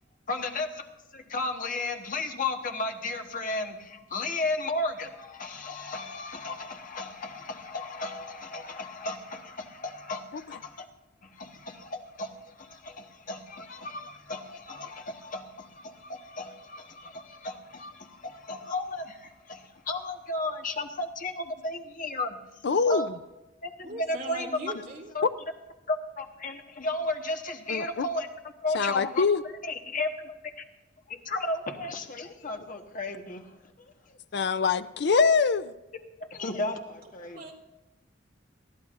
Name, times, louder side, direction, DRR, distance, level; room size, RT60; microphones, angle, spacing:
voice 1, 0.3-0.9 1.1-10.9 11.2-22.4 22.9-23.1 23.6-24.7 25.1-25.2 25.9-28.3 28.6-29.2 29.6-30.1 31.2-33.4 33.8-34.2 36.3-37.4, left 2 dB, 45° left, 4 dB, 1.3 m, -34 dB
voice 2, 22.6-23.1 27.7-28.0 28.7-29.4 34.3-35.7, left 5 dB, 60° left, 12 dB, 0.5 m, -24 dB
voice 3, 23.8-25.1 37.0-37.5, right 1 dB, 50° right, -2 dB, 2.8 m, -40 dB
21.0 x 13.5 x 2.6 m, 1.0 s
head